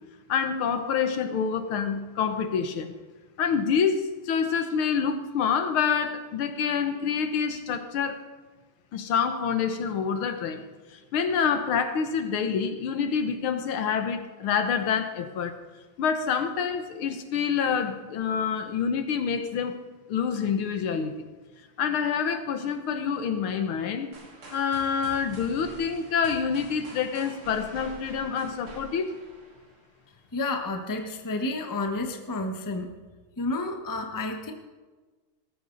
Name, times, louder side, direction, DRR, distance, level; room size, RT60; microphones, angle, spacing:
voice 1, 0.3-2.9 3.4-8.2 8.9-10.7 11.1-15.6 16.0-19.8 20.1-21.1 21.8-24.1 24.5-29.1, left 6 dB, 75° left, 8 dB, 1.9 m, -27 dB
sound 1, 24.1-30.0, right 2 dB, 70° right, 3.5 m, -46 dB
voice 2, 30.3-32.9 33.4-34.5, left 2 dB, 15° left, 4 dB, 0.7 m, -30 dB
19.5 x 13.5 x 4.0 m, 1.3 s
omnidirectional pair, 2.4 m